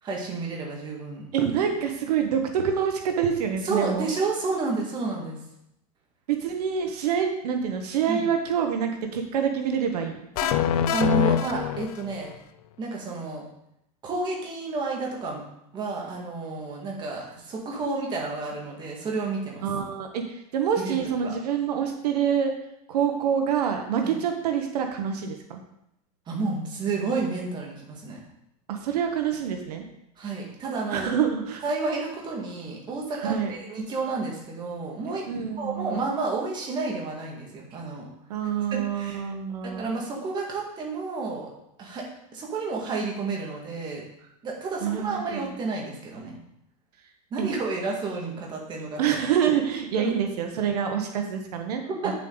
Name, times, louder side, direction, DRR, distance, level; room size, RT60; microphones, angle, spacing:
voice 1, 0.0-1.3 3.6-5.4 8.1-8.3 10.4-10.5 10.9-12.3 12.8-13.4 14.0-15.4 15.7-19.7 20.8-21.3 24.0-24.1 26.3-28.2 30.2-31.1 31.6-35.2 35.6-38.1 38.9-39.3 39.6-41.5 41.8-42.0 42.3-44.0 44.4-46.4 47.3-49.2 50.0-50.1 51.9-52.1, right 3 dB, 20° right, -1 dB, 1.9 m, -30 dB
voice 2, 1.3-4.0 6.3-10.2 19.6-22.5 22.9-25.6 28.7-29.8 30.9-31.6 33.1-33.5 35.3-36.0 38.3-39.9 44.8-45.4 47.4-47.5 49.0-52.1, right 8 dB, 75° right, 4 dB, 1.2 m, -26 dB
sound 1, 10.4-12.4, left 9 dB, 65° left, 0.6 m, -24 dB
8.6 x 7.4 x 4.0 m, 0.80 s
supercardioid pair, 155°, 20 cm